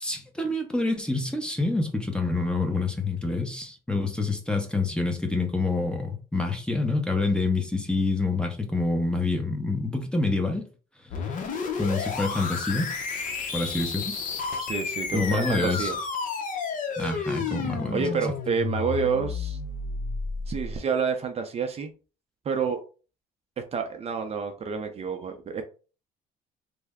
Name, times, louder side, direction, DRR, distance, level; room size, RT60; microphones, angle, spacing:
voice 1, 0.0-10.7 11.8-12.9 13.5-14.2 15.1-15.9 17.0-18.1, left 3 dB, 5° left, 0.7 m, -27 dB
sound 1, 11.1-20.8, left 5 dB, 50° left, 0.7 m, -31 dB
voice 2, 14.6-16.0 17.9-19.6 20.5-21.9 22.5-22.8 23.7-25.6, right 5 dB, 35° right, 0.5 m, -28 dB
3.3 x 2.0 x 3.4 m
cardioid pair, 110°, 17 cm